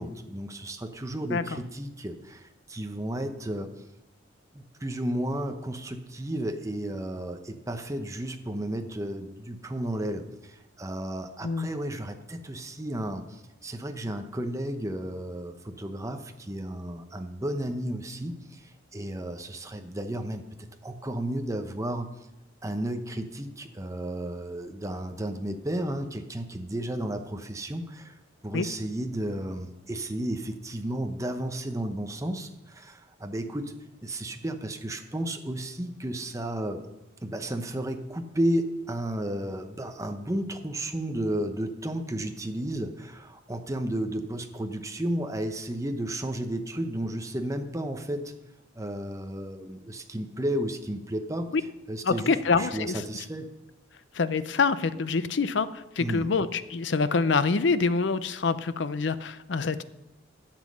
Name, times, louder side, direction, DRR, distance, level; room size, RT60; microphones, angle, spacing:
voice 1, 0.0-3.7 4.5-20.4 20.8-22.1 22.6-28.2 28.4-33.7 34.0-36.9 37.2-48.3 48.7-51.5 51.9-53.5 56.0-56.3, right 1 dB, 15° right, 6 dB, 0.8 m, -33 dB
voice 2, 52.0-53.2 54.1-59.8, left 4 dB, 65° left, 14 dB, 0.6 m, -26 dB
12.0 x 7.4 x 6.3 m, 0.97 s
head